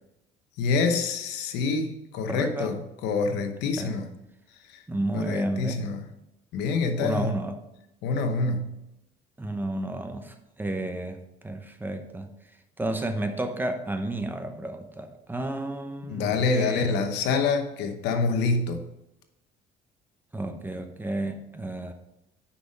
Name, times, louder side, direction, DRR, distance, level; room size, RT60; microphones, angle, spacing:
voice 1, 0.6-4.1 4.7-4.8 5.1-6.1 6.5-7.3 8.0-8.7 16.1-18.8, left 4 dB, 90° left, 7 dB, 1.0 m, -26 dB
voice 2, 2.3-2.7 3.8-4.0 4.9-5.8 7.0-7.6 9.4-11.2 11.4-12.3 12.8-17.1 20.3-21.9, right 1 dB, 10° right, 6 dB, 0.9 m, -31 dB
6.2 x 5.6 x 5.1 m, 0.89 s
cardioid pair, 110°, 17 cm